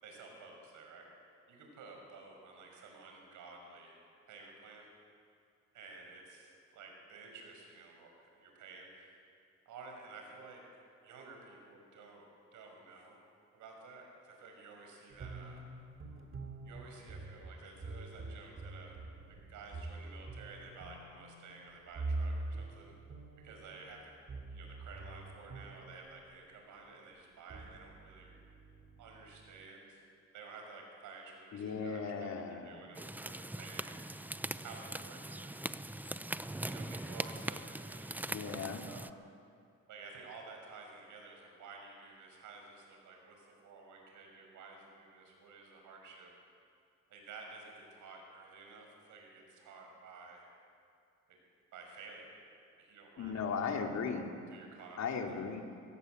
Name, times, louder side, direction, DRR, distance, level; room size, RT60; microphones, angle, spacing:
voice 1, 0.0-1.1 1.5-4.0 4.3-4.9 5.7-9.2 9.7-10.6 11.0-12.3 12.5-13.2 13.5-15.7 16.6-18.9 19.3-22.9 23.4-24.1 24.5-28.4 29.0-30.0 30.3-34.3 34.6-35.6 36.6-39.1 39.9-46.3 47.1-50.5 51.3-51.4 51.7-52.4 52.8-53.9 54.5-55.0, right 4 dB, 85° right, 1 dB, 5.7 m, -52 dB
sound 1, 15.1-26.6 27.2-29.6, right 2 dB, 45° right, 3.1 m, -45 dB
voice 2, 31.5-32.8 38.3-38.8 53.2-54.3 55.0-55.6, left 5 dB, 65° left, 3 dB, 2.8 m, -37 dB
sound 2, 32.9-39.1, right 1 dB, 5° right, 0.6 m, -41 dB
22.5 x 17.5 x 8.0 m, 2.4 s
cardioid pair, 90°, 30 cm